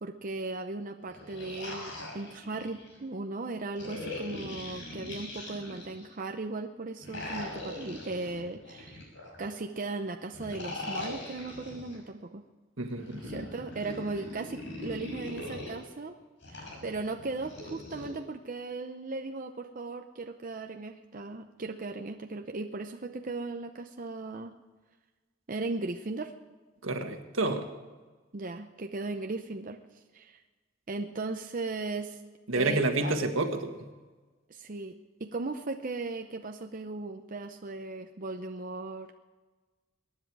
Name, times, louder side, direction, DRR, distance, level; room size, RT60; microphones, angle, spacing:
voice 1, 0.0-9.1 9.4-12.4 13.2-16.1 16.5-24.5 25.5-26.3 28.3-29.8 30.1-30.4 30.9-32.2 32.5-33.2 34.5-34.9 35.2-39.1, right 3 dB, 40° right, 5 dB, 0.7 m, -37 dB
sound 1, 1.0-2.9 3.8-6.1 7.0-9.5 10.3-12.0 12.9-15.7 16.4-18.1, left 2 dB, 65° left, 5.9 m, -41 dB
voice 2, 12.8-13.3 26.8-27.7 32.5-33.7, right 2 dB, 80° right, 5 dB, 1.7 m, -29 dB
23.0 x 10.5 x 4.8 m, 1.3 s
head